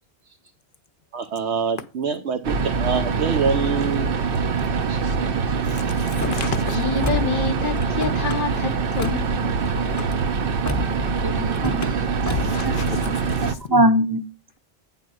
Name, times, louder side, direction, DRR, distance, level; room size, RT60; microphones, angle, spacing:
voice 1, 1.1-4.1 4.8-5.0, right 5 dB, 80° right, 1.0 m, -25 dB
sound 1, 2.4-13.5, right 5 dB, 60° right, 0.9 m, -24 dB
voice 2, 5.0-9.5 12.4-13.7, left 4 dB, 55° left, 0.8 m, -29 dB
Car / Slam, 6.0-6.5 7.0-7.4 7.8-8.4 9.0-9.2 9.6-10.1 10.7-11.1 11.5-11.9 12.3-12.6, left 4 dB, 20° left, 0.7 m, -29 dB
voice 3, 11.2-12.4 12.6-12.8 13.0-13.1 13.7-14.2, equal, 25° right, 0.7 m, -22 dB
9.0 x 3.7 x 6.2 m
omnidirectional pair, 1.1 m